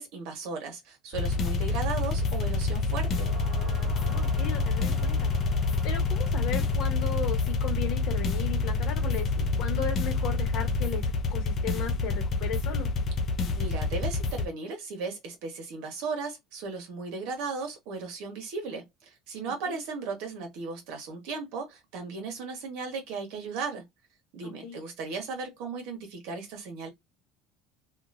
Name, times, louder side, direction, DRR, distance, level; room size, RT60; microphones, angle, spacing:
voice 1, 0.0-3.3 13.5-23.8 24.3-26.9, right 4 dB, 70° right, 1.3 m, -36 dB
sound 1, 1.1-14.4, left 3 dB, 35° left, 0.6 m, -27 dB
sound 2, 3.0-11.5 11.8-11.9, right 2 dB, 20° right, 1.4 m, -49 dB
voice 2, 4.0-5.4 5.8-11.0 11.3-12.9 19.4-19.8 24.4-24.8, left 7 dB, 55° left, 1.1 m, -36 dB
2.9 x 2.4 x 2.5 m
cardioid pair, 160°, 0 cm